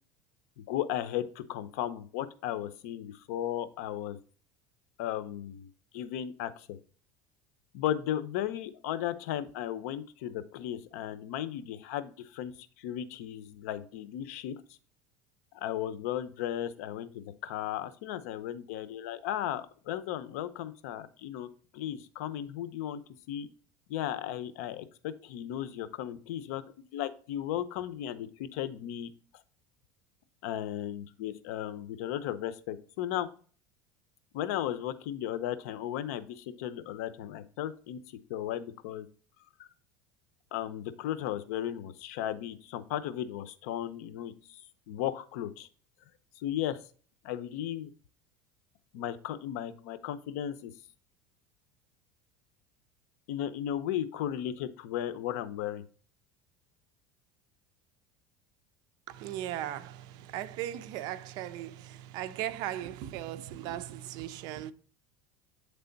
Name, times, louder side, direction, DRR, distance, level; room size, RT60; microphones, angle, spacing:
voice 1, 0.6-4.2 5.0-5.7 5.9-6.8 7.7-14.5 15.5-23.0 23.3-23.5 23.9-26.6 26.9-29.1 30.4-33.3 34.3-39.1 39.6-39.7 40.5-45.7 46.4-46.8 47.2-47.9 48.9-50.7 53.3-55.8, left 11 dB, 80° left, 0.7 m, -35 dB
voice 2, 59.1-64.7, right 12 dB, 60° right, 0.5 m, -38 dB
8.4 x 3.4 x 3.9 m
supercardioid pair, 135°, 8 cm